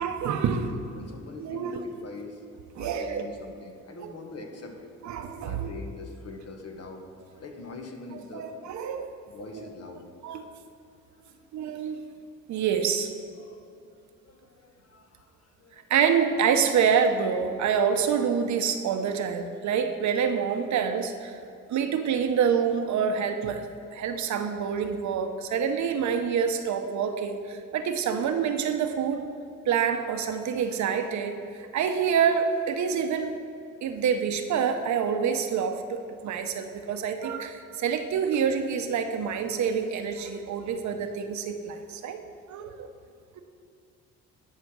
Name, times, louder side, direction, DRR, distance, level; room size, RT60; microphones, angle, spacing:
voice 1, 0.0-0.7 1.4-1.8 2.7-3.3 4.0-4.1 5.0-5.7 8.1-9.1 9.5-9.7 10.2-10.5 11.5-12.0 12.5-13.1 15.9-21.4 21.7-29.2 29.7-33.4 33.8-42.2 42.5-42.9, right 7 dB, 70° right, 7 dB, 0.8 m, -27 dB
voice 2, 0.6-2.4 2.8-4.9 5.4-7.1 7.3-8.6 9.3-10.0 11.2-11.5 13.4-13.6 14.2-15.3 15.6-15.9, left 3 dB, 55° left, 4 dB, 1.3 m, -43 dB
10.5 x 4.9 x 6.2 m, 2.5 s
cardioid pair, 90°, 30 cm